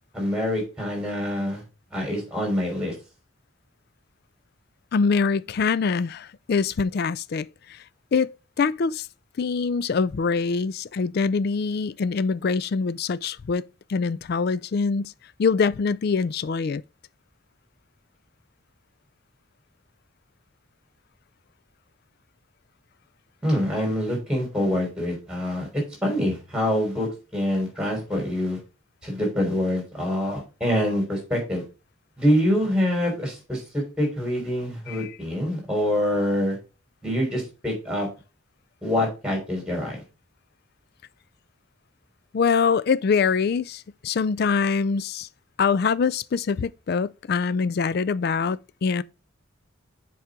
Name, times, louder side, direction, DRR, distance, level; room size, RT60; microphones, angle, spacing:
voice 1, 0.1-1.6 1.9-2.9 23.4-27.1 27.3-28.6 29.0-31.6 32.2-36.6 37.0-38.1 38.8-40.0, equal, 5° right, 3.7 m, -25 dB
voice 2, 4.9-7.8 8.1-8.3 8.6-9.1 9.4-13.6 13.9-15.1 15.4-16.8 34.9-35.1 42.3-45.3 45.6-49.0, left 5 dB, 50° left, 0.3 m, -24 dB
7.2 x 4.7 x 5.1 m
head